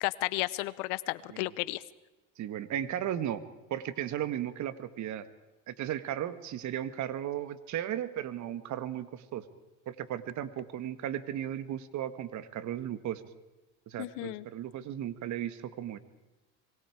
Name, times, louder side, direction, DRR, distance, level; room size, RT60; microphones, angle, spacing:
voice 1, 0.0-1.8 14.0-14.5, left 20 dB, 80° left, 17 dB, 0.9 m, -33 dB
voice 2, 2.4-3.4 3.7-5.3 5.7-9.4 9.9-13.2 13.9-16.0, right 11 dB, 55° right, 13 dB, 1.6 m, -35 dB
26.0 x 22.5 x 4.9 m, 1.1 s
supercardioid pair, 95°, 35 cm